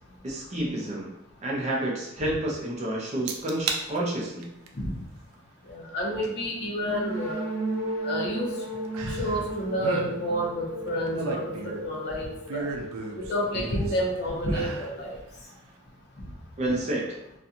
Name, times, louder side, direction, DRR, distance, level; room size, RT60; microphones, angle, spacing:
voice 1, 0.2-1.1 1.4-4.5 16.6-17.1, right 1 dB, 30° right, -3 dB, 0.5 m, -29 dB
sound 1, 3.3-3.8 4.3-4.7 6.2-6.3 8.9-9.5 9.7-10.1 10.9-11.9 12.5-14.0 14.4-14.9 15.4-15.5, right 4 dB, 85° right, 0.4 m, -34 dB
voice 2, 5.7-7.4 8.0-8.5 9.0-11.5 11.8-12.6 13.2-15.1 16.7-16.8, equal, 50° left, -2 dB, 0.5 m, -29 dB
sound 2, 6.8-14.5, right 1 dB, 50° right, 0.8 m, -35 dB
2.5 x 2.2 x 2.7 m, 0.84 s
head